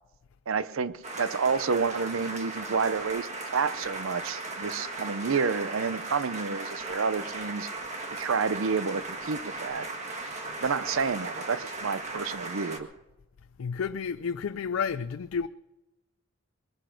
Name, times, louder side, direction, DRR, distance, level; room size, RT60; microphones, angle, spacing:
voice 1, 0.5-7.7 8.1-9.9 10.6-12.9, right 5 dB, 80° right, 0.6 m, -29 dB
sound 1, 1.0-12.8, right 2 dB, 35° right, 1.7 m, -37 dB
voice 2, 13.6-15.5, left 6 dB, 85° left, 0.4 m, -31 dB
21.5 x 10.0 x 5.9 m
head